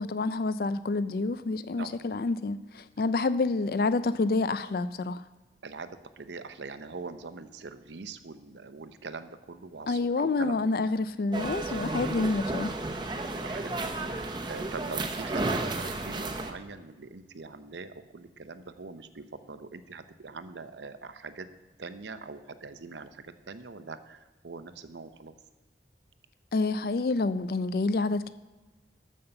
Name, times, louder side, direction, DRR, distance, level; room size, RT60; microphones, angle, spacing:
voice 1, 0.0-5.2 9.9-12.7 26.5-28.3, left 3 dB, 55° left, 13 dB, 0.4 m, -28 dB
voice 2, 5.6-10.9 12.0-12.3 13.2-21.5 21.8-25.4, right 4 dB, 90° right, 11 dB, 0.7 m, -43 dB
sound 1, 11.3-16.5, right 2 dB, 25° right, 0.8 m, -32 dB
12.5 x 5.5 x 6.8 m, 1.2 s
head